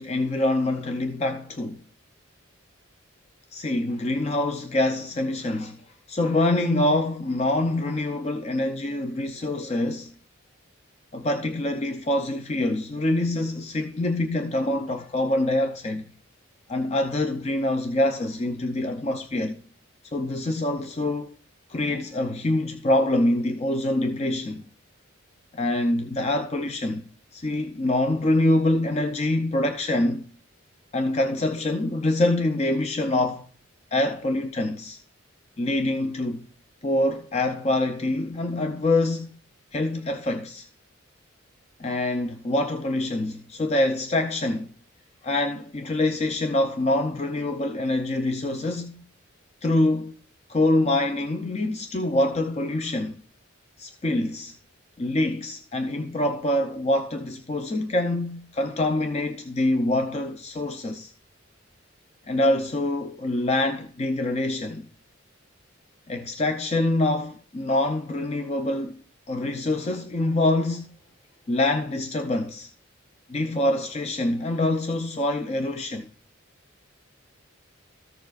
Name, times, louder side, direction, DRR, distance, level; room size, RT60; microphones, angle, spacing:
voice 1, 0.0-1.8 3.5-5.8 6.1-10.1 11.1-16.1 16.7-19.6 20.1-21.3 21.7-24.6 25.5-27.1 27.3-30.2 30.9-33.5 33.9-35.0 35.6-36.4 36.8-39.3 39.7-40.7 41.8-44.7 45.2-49.0 49.6-50.1 50.5-53.2 53.8-54.6 55.0-61.1 62.3-64.9 66.1-69.0 69.3-70.9 71.5-72.7 73.3-76.1, left 1 dB, 30° left, 0.5 m, -25 dB
14.0 x 6.9 x 2.4 m
head